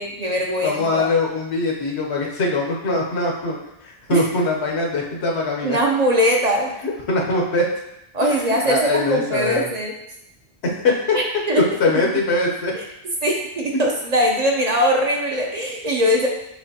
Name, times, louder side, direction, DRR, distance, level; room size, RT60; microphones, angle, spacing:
voice 1, 0.0-1.1 4.1-4.2 5.6-6.7 8.1-9.9 11.1-11.6 13.2-16.3, equal, 45° right, 0 dB, 0.7 m, -21 dB
voice 2, 0.6-5.8 6.8-7.7 8.2-9.7 10.6-11.2 11.5-12.7 13.7-13.8, left 2 dB, 85° left, -1 dB, 1.1 m, -22 dB
6.4 x 3.0 x 2.8 m, 0.86 s
omnidirectional pair, 1.1 m